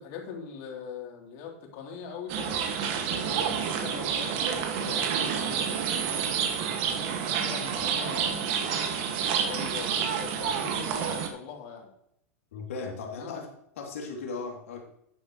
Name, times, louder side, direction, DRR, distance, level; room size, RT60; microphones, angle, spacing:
voice 1, 0.0-5.8 7.2-11.9 13.1-13.4, left 6 dB, 50° left, 0 dB, 3.4 m, -42 dB
amb-birds-cowbells saranda, 2.3-11.3, right 7 dB, 55° right, 1.9 m, -29 dB
voice 2, 12.5-13.5 13.8-14.8, left 4 dB, 70° left, 1 dB, 3.0 m, -37 dB
12.0 x 9.0 x 3.2 m, 0.75 s
hypercardioid pair, 105°, 8 cm